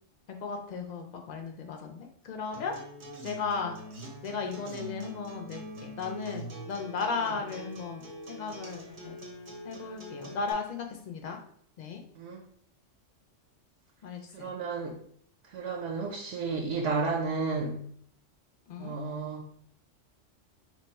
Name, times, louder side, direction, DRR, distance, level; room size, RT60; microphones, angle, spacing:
voice 1, 0.4-2.7 3.2-3.8 4.2-9.2 9.6-11.4 11.8-12.0 14.0-14.5 18.7-19.0, left 5 dB, 50° left, 3 dB, 0.5 m, -36 dB
Acoustic guitar, 2.5-10.5, equal, 50° right, 0.7 m, -44 dB
voice 2, 14.3-15.0 15.5-17.9 18.8-19.5, right 4 dB, 75° right, 1 dB, 0.9 m, -32 dB
3.0 x 2.2 x 4.1 m, 0.64 s
omnidirectional pair, 1.3 m